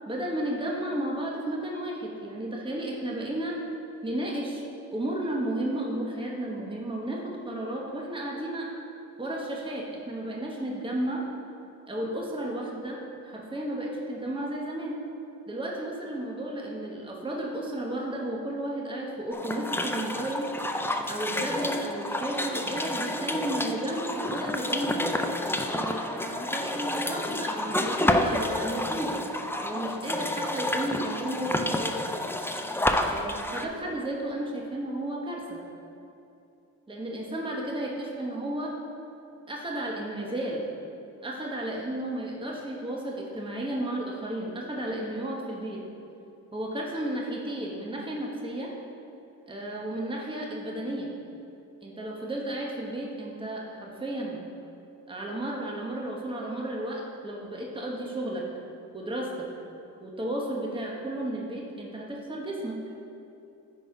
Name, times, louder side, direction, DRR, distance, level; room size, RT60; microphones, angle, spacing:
voice 1, 0.1-3.6 4.0-4.6 4.9-8.7 9.2-11.2 11.9-13.0 13.2-15.0 15.5-20.5 21.1-25.0 25.7-29.2 29.6-32.0 33.0-35.6 36.9-38.7 39.5-40.6 41.2-45.8 46.5-48.7 49.5-51.1 51.8-54.4 55.1-58.4 58.9-59.4 60.0-62.8, right 1 dB, 15° right, -2 dB, 1.3 m, -33 dB
sound 1, 19.3-33.6, left 1 dB, 5° left, 0.5 m, -29 dB
9.9 x 4.3 x 4.9 m, 2.8 s
cardioid pair, 80°, 34 cm